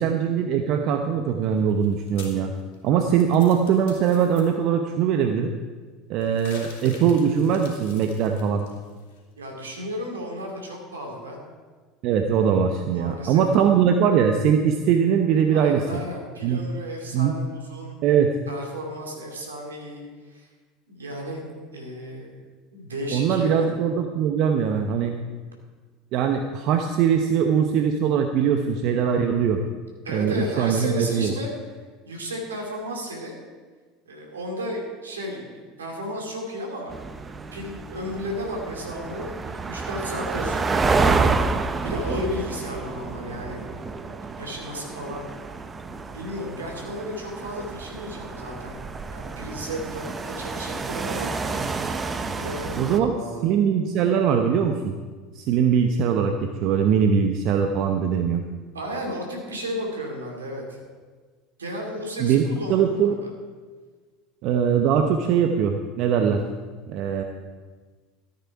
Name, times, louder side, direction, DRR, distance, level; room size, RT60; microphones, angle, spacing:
voice 1, 0.0-2.5 2.8-5.5 6.1-8.7 12.0-15.8 16.4-16.6 17.1-17.3 18.0-18.3 23.1-25.2 26.1-29.6 30.1-31.3 52.8-53.1 53.4-54.9 55.3-58.4 62.2-62.4 62.7-63.2 64.4-66.4 66.9-67.2, right 7 dB, 55° right, 5 dB, 0.8 m, -21 dB
sound 1, 1.6-4.4 6.2-9.2, left 4 dB, 70° left, 3.0 m, -46 dB
voice 2, 9.4-11.4 12.9-13.4 15.5-18.0 18.5-20.0 20.3-20.5 20.9-21.4 21.7-22.4 22.7-23.7 30.0-31.5 32.1-33.3 34.1-36.9 37.5-40.7 41.8-43.6 44.4-45.3 45.9-48.8 49.1-51.3 52.3-53.5 58.7-60.8 61.6-63.1, equal, 85° right, 0 dB, 2.5 m, -33 dB
sound 2, 36.9-53.0, right 4 dB, 25° right, 0.8 m, -29 dB
14.0 x 8.7 x 4.7 m, 1.4 s
hypercardioid pair, 75°, 0 cm